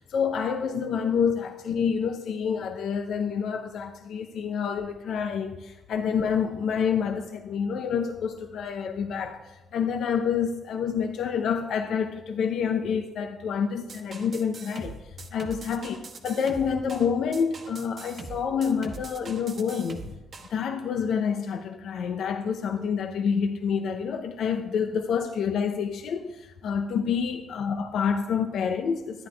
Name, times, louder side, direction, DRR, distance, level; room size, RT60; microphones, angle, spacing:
voice 1, 0.0-15.0 15.3-20.1 20.5-29.3, left 6 dB, 70° left, 0.7 m, -28 dB
sound 1, 13.9-20.5, right 4 dB, 50° right, 1.2 m, -42 dB
11.5 x 9.3 x 3.4 m
cardioid pair, 90°, 0 cm